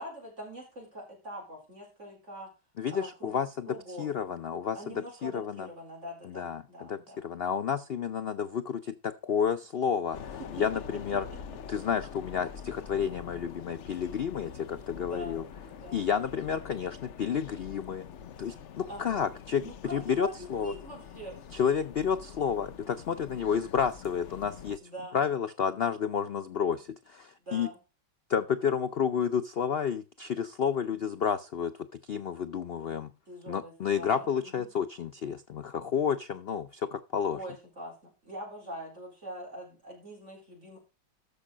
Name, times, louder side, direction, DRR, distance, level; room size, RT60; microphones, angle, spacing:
voice 1, 0.0-2.5 2.9-3.4 3.7-4.1 4.7-7.3 10.4-10.5 14.9-16.1 18.9-19.2 19.6-21.4 23.6-23.7 24.8-25.2 27.4-27.8 33.3-34.7 37.3-40.8, equal, 40° right, -2 dB, 4.6 m, -43 dB
voice 2, 2.8-5.7 6.2-11.2 11.7-15.4 15.9-18.1 18.4-20.7 21.5-24.8 25.1-27.7 28.3-31.7 32.0-33.1 33.5-37.4, left 7 dB, 80° left, 12 dB, 0.5 m, -31 dB
sound 1, 10.1-24.8, left 7 dB, 55° left, 0.9 m, -45 dB
13.5 x 5.5 x 5.0 m, 0.30 s
omnidirectional pair, 1.8 m